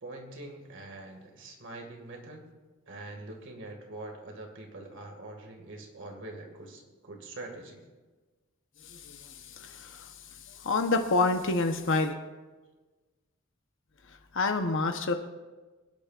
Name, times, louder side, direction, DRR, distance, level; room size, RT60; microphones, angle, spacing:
voice 1, 0.0-2.5 2.9-7.8, right 2 dB, 55° right, 3 dB, 2.0 m, -44 dB
voice 2, 8.8-10.1 10.5-12.1 14.3-15.1, left 3 dB, 60° left, 6 dB, 0.9 m, -28 dB
24.5 x 10.0 x 2.5 m, 1.3 s
head